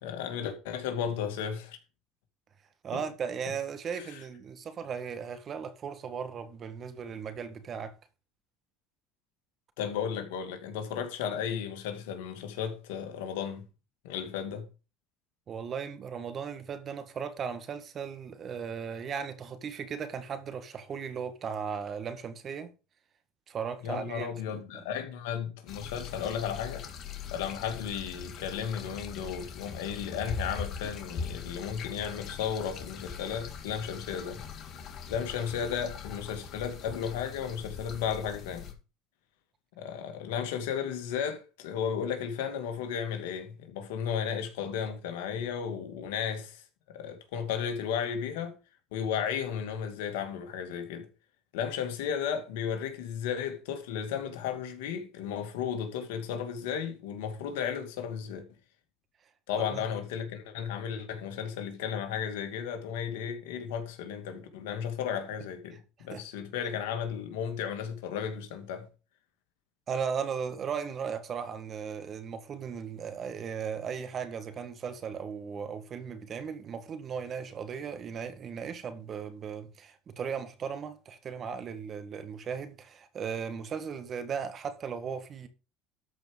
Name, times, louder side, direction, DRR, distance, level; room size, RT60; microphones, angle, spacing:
voice 1, 0.0-1.8 2.9-3.0 3.9-4.2 9.8-13.6 14.0-14.7 23.8-26.9 27.3-34.4 35.1-38.7 39.8-48.6 48.9-51.1 51.5-58.4 59.5-68.9, left 8 dB, 85° left, 2.2 m, -34 dB
voice 2, 2.8-7.9 15.5-22.7 23.5-24.8 59.7-59.8 66.1-66.2 69.9-85.5, right 6 dB, 40° right, 1.8 m, -37 dB
sound 1, 25.7-38.7, left 6 dB, 50° left, 2.0 m, -41 dB
13.0 x 5.1 x 5.2 m
supercardioid pair, 95°, 0 cm